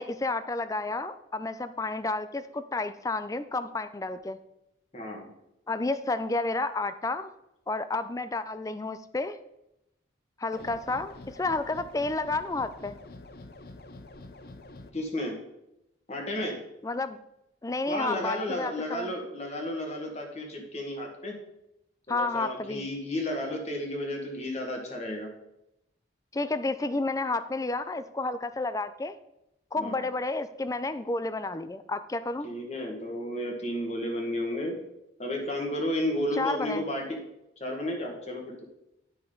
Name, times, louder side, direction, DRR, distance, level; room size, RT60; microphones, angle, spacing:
voice 1, 0.0-4.4 5.7-7.3 7.7-9.4 10.4-13.0 16.8-17.2 17.6-19.1 22.1-22.9 26.3-29.2 29.7-32.5 36.3-36.9, left 3 dB, 20° left, 12 dB, 0.4 m, -31 dB
voice 2, 4.9-5.3 14.9-15.4 16.1-16.6 17.9-21.3 22.1-25.3 29.8-30.0 32.4-34.8 35.2-37.2 37.6-38.7, left 1 dB, 35° left, 2 dB, 1.6 m, -32 dB
sound 1, 10.5-14.9, left 2 dB, 55° left, 0.6 m, -46 dB
10.0 x 5.9 x 3.8 m, 0.86 s
head